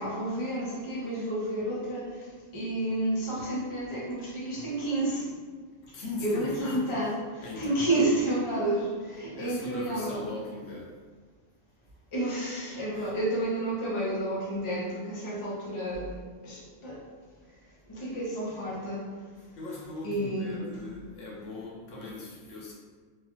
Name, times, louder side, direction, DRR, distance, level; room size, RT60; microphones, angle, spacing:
voice 1, 0.0-2.1 2.5-5.2 6.2-7.1 7.4-10.2 12.1-16.1 16.4-17.0 17.9-19.1 20.0-20.6, right 1 dB, 30° left, -7 dB, 0.7 m, -30 dB
voice 2, 5.9-7.0 7.4-8.0 9.3-10.9 12.9-13.1 19.4-22.7, left 2 dB, 75° left, -4 dB, 1.0 m, -39 dB
3.1 x 2.3 x 3.0 m, 1.5 s
omnidirectional pair, 1.3 m